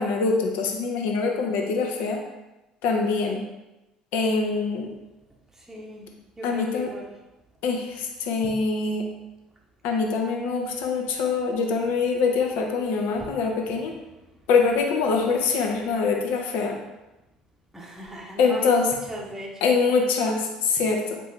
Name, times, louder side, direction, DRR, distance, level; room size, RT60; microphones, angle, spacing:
voice 1, 0.0-2.2 2.8-3.4 4.1-4.9 6.4-6.9 7.6-9.1 9.8-14.0 14.5-16.8 18.4-18.9 19.6-21.2, left 4 dB, 60° left, 2 dB, 0.6 m, -24 dB
voice 2, 5.6-6.1 6.4-7.1 8.4-8.6 13.1-13.3 17.7-19.7, equal, 10° right, -3 dB, 0.8 m, -37 dB
4.3 x 2.7 x 3.5 m, 0.99 s
figure-of-eight pair, 55°, 3 cm